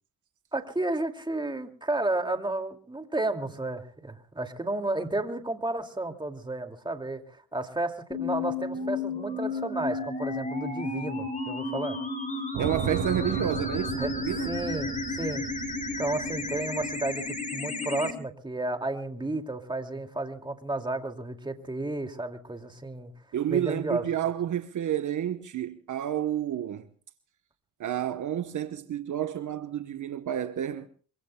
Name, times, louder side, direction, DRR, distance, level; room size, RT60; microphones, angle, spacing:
voice 1, 0.5-12.0 14.0-14.1 14.4-15.5 16.0-23.1 23.5-24.0, right 2 dB, 15° right, 2.4 m, -32 dB
sound 1, 8.1-18.1, left 3 dB, 20° left, 3.6 m, -33 dB
sound 2, 12.5-17.4, right 9 dB, 80° right, 2.1 m, -36 dB
voice 2, 12.6-14.5 23.3-26.8 27.8-30.9, right 10 dB, 60° right, 1.1 m, -30 dB
25.5 x 24.5 x 2.3 m
cardioid pair, 75°, 35 cm